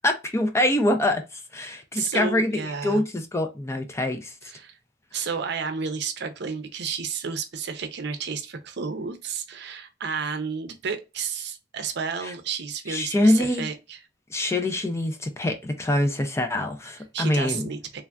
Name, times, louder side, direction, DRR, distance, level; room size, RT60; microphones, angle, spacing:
voice 1, 0.0-1.2 1.5-4.3 12.2-12.3 12.9-13.7 14.3-17.7, left 1 dB, 15° left, 0.4 m, -24 dB
voice 2, 1.7-3.0 4.5-4.8 5.1-14.0 17.1-18.0, right 5 dB, 65° right, 0.6 m, -31 dB
3.2 x 2.4 x 2.2 m
head